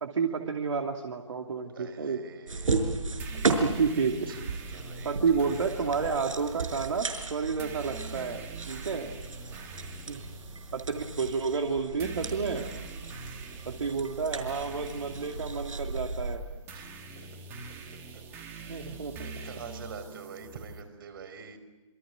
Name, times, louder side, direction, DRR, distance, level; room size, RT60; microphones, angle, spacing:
voice 1, 0.0-2.2 3.3-4.2 5.0-9.1 10.1-10.2 10.7-12.7 13.6-16.4 18.7-19.3, right 5 dB, 65° right, 2 dB, 2.7 m, -30 dB
voice 2, 1.7-2.8 4.3-5.7 9.5-10.0 13.0-13.5 16.7-17.4 17.7-17.8 18.1-18.2 18.6-21.6, right 5 dB, 45° right, 8 dB, 5.0 m, -47 dB
sound 1, 2.5-16.4, right 3 dB, 85° right, 5.6 m, -35 dB
sound 2, 3.2-20.8, right 4 dB, 15° right, 2.2 m, -45 dB
27.5 x 25.5 x 8.2 m, 1.2 s
hypercardioid pair, 165°, 16 cm